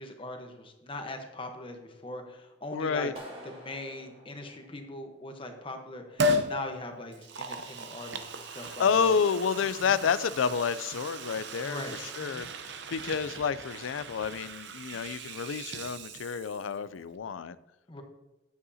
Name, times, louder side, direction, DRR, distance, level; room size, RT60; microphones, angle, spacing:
voice 1, 0.0-3.1 3.4-9.1 9.9-10.0 11.6-12.4 17.9-18.0, left 2 dB, 25° left, 5 dB, 1.0 m, -41 dB
voice 2, 2.7-3.1 8.6-12.5 12.9-17.6, left 6 dB, 90° left, 16 dB, 0.4 m, -29 dB
Clapping, 3.2-5.2, equal, 30° right, 1.6 m, -48 dB
Liquid, 6.2-6.5 7.1-16.8 17.1-17.2, equal, 60° right, 0.7 m, -36 dB
9.4 x 8.3 x 2.8 m, 1.0 s
head